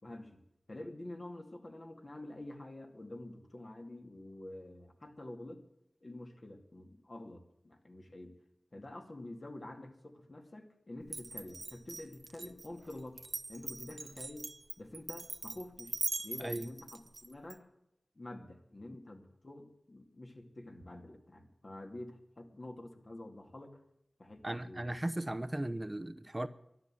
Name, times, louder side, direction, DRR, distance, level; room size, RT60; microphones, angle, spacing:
voice 1, 0.0-5.6 6.0-8.4 8.7-13.2 13.5-14.5 14.8-16.0 16.2-17.7 18.2-23.8 24.2-24.9, left 1 dB, 50° left, 4 dB, 2.3 m, -48 dB
Glass, 11.1-17.6, right 3 dB, 70° right, 0.8 m, -41 dB
voice 2, 16.4-16.7 24.4-26.5, right 1 dB, 25° right, 10 dB, 0.8 m, -37 dB
12.5 x 11.5 x 7.6 m, 0.81 s
cardioid pair, 45°, 0 cm